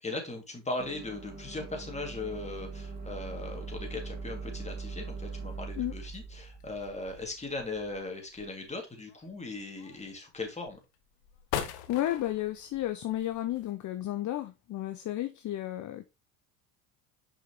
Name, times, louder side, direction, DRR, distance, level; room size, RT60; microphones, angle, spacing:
voice 1, 0.0-10.8, left 2 dB, 15° left, 2.5 m, -38 dB
sound 1, 0.8-7.9, right 4 dB, 20° right, 1.7 m, -42 dB
sound 2, 2.5-13.7, left 10 dB, 75° left, 1.2 m, -45 dB
voice 2, 11.7-16.1, left 13 dB, 45° left, 0.7 m, -33 dB
6.3 x 5.0 x 3.1 m
hypercardioid pair, 80°, 44 cm